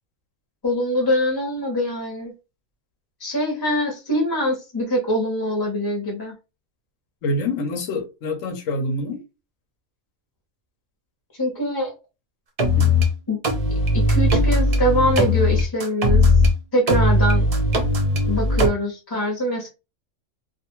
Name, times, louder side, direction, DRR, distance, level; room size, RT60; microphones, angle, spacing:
voice 1, 0.6-2.3 3.2-6.3 11.4-11.9 13.3-13.4 13.9-16.3 16.7-17.5 18.3-19.7, equal, 20° left, 0.7 m, -23 dB
voice 2, 7.2-9.2 12.8-12.9, left 1 dB, 80° left, 1.1 m, -26 dB
sound 1, 12.6-13.1 13.4-16.5 16.9-18.7, left 1 dB, 45° right, 0.4 m, -18 dB
2.5 x 2.3 x 2.9 m
omnidirectional pair, 1.4 m